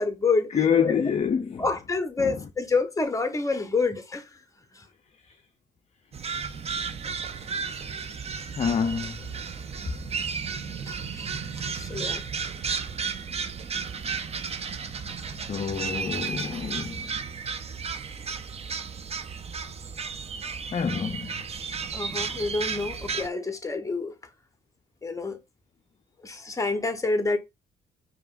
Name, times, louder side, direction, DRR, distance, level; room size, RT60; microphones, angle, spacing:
voice 1, 0.0-0.5 0.8-0.9 1.6-4.2 4.7-4.8 10.9-11.3 11.6-12.2 21.9-24.1 25.0-25.4 26.2-27.4, left 3 dB, 15° left, 0.9 m, -28 dB
voice 2, 0.5-1.7 2.2-2.4 8.6-9.3 15.3-17.0 20.7-21.3, left 7 dB, 35° left, 0.4 m, -27 dB
sound 1, 6.1-23.3, right 5 dB, 30° right, 0.5 m, -33 dB
4.9 x 2.8 x 2.4 m
cardioid pair, 90°, 20 cm